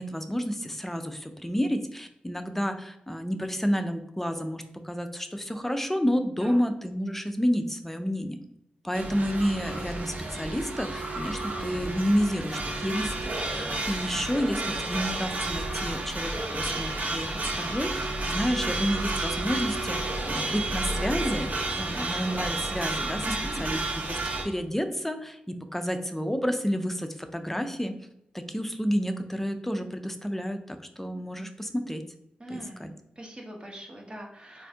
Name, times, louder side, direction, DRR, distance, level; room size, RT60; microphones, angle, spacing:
voice 1, 0.0-8.4 8.8-21.5 21.8-23.3 23.6-23.8 24.1-24.2 24.4-27.9 28.5-32.0 32.5-32.9, equal, 10° left, 7 dB, 0.4 m, -30 dB
sound 1, 8.9-24.4, right 2 dB, 55° right, 0.9 m, -31 dB
voice 2, 23.2-23.8 32.4-34.7, equal, 30° right, 0 dB, 1.0 m, -42 dB
4.1 x 2.5 x 3.5 m, 0.82 s
cardioid pair, 65°, 3 cm